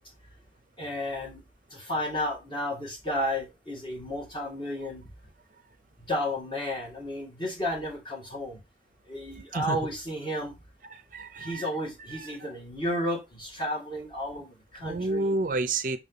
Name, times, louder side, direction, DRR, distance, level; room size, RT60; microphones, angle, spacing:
voice 1, 0.8-1.4 1.7-5.0 6.1-8.6 9.1-10.5 11.4-15.3, left 1 dB, 25° left, 1.9 m, -32 dB
voice 2, 10.9-11.7 12.1-12.3 14.8-16.0, right 2 dB, 50° right, 0.5 m, -30 dB
6.0 x 4.1 x 4.0 m
head